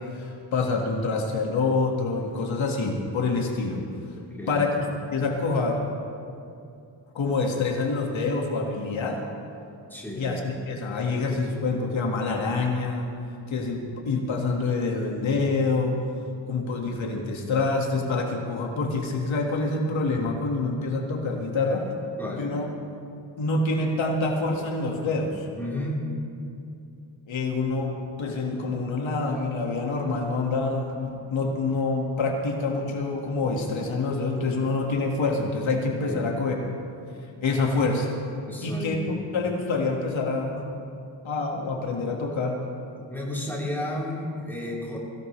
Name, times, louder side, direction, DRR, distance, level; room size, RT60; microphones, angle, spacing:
voice 1, 0.0-3.8 4.5-4.7 5.1-5.8 7.1-9.2 10.2-10.4 10.7-13.1 13.5-16.0 16.5-21.9 22.4-22.7 23.4-25.5 27.3-36.6 37.4-38.2 38.6-40.8 41.2-42.6, left 3 dB, 80° left, 0 dB, 2.0 m, -26 dB
voice 2, 4.2-4.6 9.9-10.3 22.2-22.5 25.5-26.0 36.1-36.3 38.4-39.2 42.9-45.0, left 1 dB, 5° left, -6 dB, 4.0 m, -33 dB
23.0 x 16.5 x 3.3 m, 2.5 s
wide cardioid pair, 135°, 46 cm